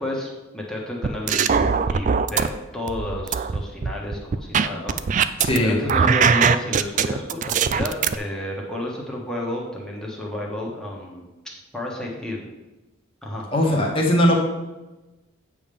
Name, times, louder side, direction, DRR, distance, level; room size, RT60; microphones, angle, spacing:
voice 1, 0.0-11.3 11.7-12.5 13.2-13.5, left 1 dB, 5° left, -3 dB, 1.5 m, -31 dB
sound 1, 1.0-2.5 2.9-5.6 5.9-8.1, right 6 dB, 35° right, 0.3 m, -20 dB
voice 2, 5.4-5.8 13.5-14.4, equal, 25° left, -1 dB, 1.5 m, -19 dB
9.0 x 3.7 x 6.9 m, 1.1 s
head